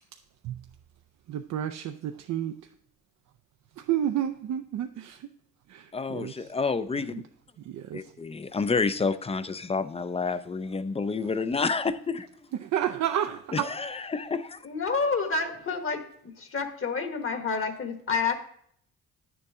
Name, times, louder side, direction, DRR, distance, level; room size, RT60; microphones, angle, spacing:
voice 1, 1.3-2.6 3.8-5.3 5.7-6.5 7.1-7.2 7.7-8.0 12.5-13.7, right 10 dB, 65° right, 7 dB, 0.5 m, -31 dB
voice 2, 5.9-7.3 7.9-12.3 13.5-14.6, left 4 dB, 20° left, 13 dB, 0.4 m, -29 dB
voice 3, 14.6-16.0 16.4-18.3, left 4 dB, 45° left, 7 dB, 1.3 m, -28 dB
9.5 x 7.0 x 3.6 m, 0.65 s
cardioid pair, 90°, 30 cm